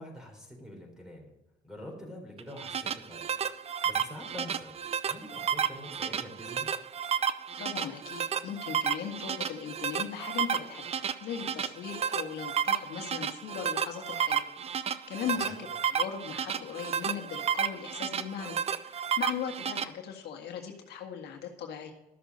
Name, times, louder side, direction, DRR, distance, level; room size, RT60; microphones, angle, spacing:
voice 1, 0.0-1.3 1.6-4.8 5.0-6.7 15.3-15.6, left 1 dB, 5° right, 1 dB, 3.9 m, -46 dB
sound 1, 2.4-19.8, right 8 dB, 35° right, 0.6 m, -32 dB
voice 2, 7.6-14.4 15.1-18.6 18.9-21.9, left 8 dB, 75° left, 3 dB, 1.7 m, -38 dB
13.0 x 6.6 x 5.4 m, 0.96 s
cardioid pair, 110°, 17 cm